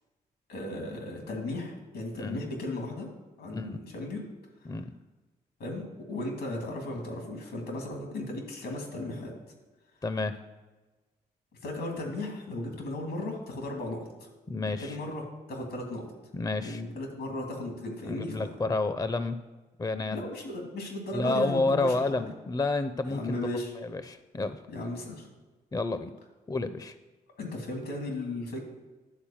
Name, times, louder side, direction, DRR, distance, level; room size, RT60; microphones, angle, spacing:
voice 1, 0.5-3.1 3.4-4.3 5.6-9.3 11.6-14.3 14.6-16.1 16.6-18.5 20.1-22.3 23.0-23.7 24.7-25.3 27.4-28.6, left 2 dB, 85° left, 1 dB, 2.7 m, -36 dB
voice 2, 10.0-10.4 14.5-15.0 16.3-16.8 18.1-19.4 19.8-20.2 21.1-23.4 23.8-24.6 25.7-26.1 26.5-26.9, left 3 dB, 20° left, 11 dB, 0.6 m, -30 dB
10.5 x 4.3 x 7.2 m, 1.2 s
supercardioid pair, 55°, 17 cm